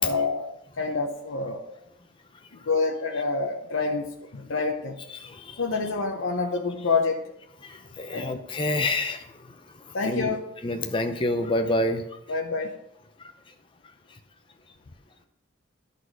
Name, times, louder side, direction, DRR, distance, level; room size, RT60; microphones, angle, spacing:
voice 1, 0.0-0.5 0.8-1.8 2.5-5.0 5.6-7.3 8.1-8.4 9.9-10.4 12.3-12.8, left 4 dB, 85° left, 1 dB, 0.7 m, -27 dB
voice 2, 5.1-5.6 7.6-9.5 9.9-10.3 10.6-12.1 13.2-13.3, left 1 dB, 25° left, 6 dB, 0.6 m, -28 dB
11.5 x 4.1 x 4.8 m, 0.80 s
head